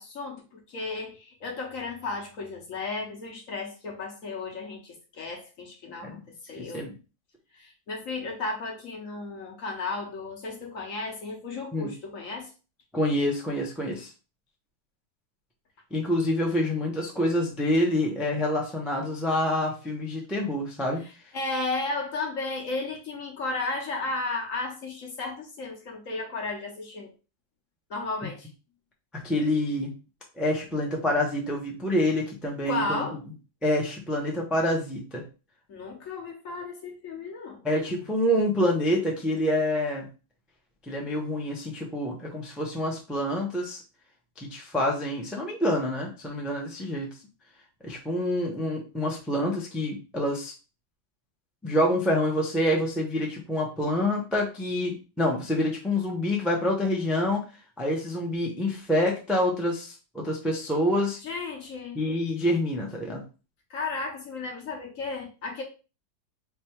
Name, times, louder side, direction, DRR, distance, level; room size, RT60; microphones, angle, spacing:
voice 1, 0.0-6.8 7.5-12.5 21.3-27.1 27.9-28.5 32.7-33.2 35.7-37.6 61.2-62.0 63.7-65.6, left 3 dB, 55° left, 1.1 m, -34 dB
voice 2, 6.6-6.9 11.7-11.9 12.9-14.1 15.9-21.0 29.1-29.9 30.4-33.0 33.6-35.2 37.6-40.1 40.9-43.8 44.4-47.1 47.8-50.5 51.6-57.4 57.8-61.2 61.9-63.2, left 1 dB, ahead, 0.3 m, -27 dB
3.4 x 2.6 x 4.4 m
omnidirectional pair, 2.0 m